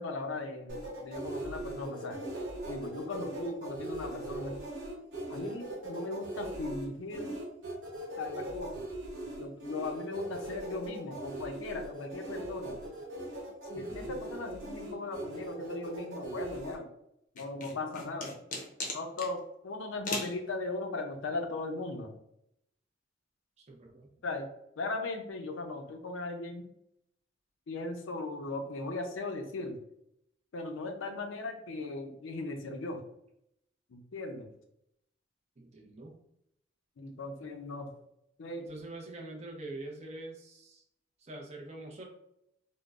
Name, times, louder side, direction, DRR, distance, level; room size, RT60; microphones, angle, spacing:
voice 1, 0.0-2.2 2.7-4.6 5.3-7.3 8.2-8.9 9.4-12.8 13.6-16.9 17.3-18.4 18.9-22.1 24.2-24.5 24.8-26.7 27.7-29.8 30.5-33.0 33.9-34.5 37.0-37.9 38.4-38.6, left 2 dB, 90° left, 5 dB, 0.5 m, -38 dB
sound 1, 0.7-16.7, right 1 dB, 80° right, 0.9 m, -40 dB
voice 2, 13.7-14.2 23.6-24.1 35.6-36.2 38.6-40.8 41.2-42.0, right 2 dB, 35° right, 0 dB, 0.5 m, -45 dB
sound 2, 17.4-19.3 20.0-20.4, left 2 dB, 40° left, 0.5 m, -37 dB
3.6 x 2.0 x 2.3 m, 0.77 s
head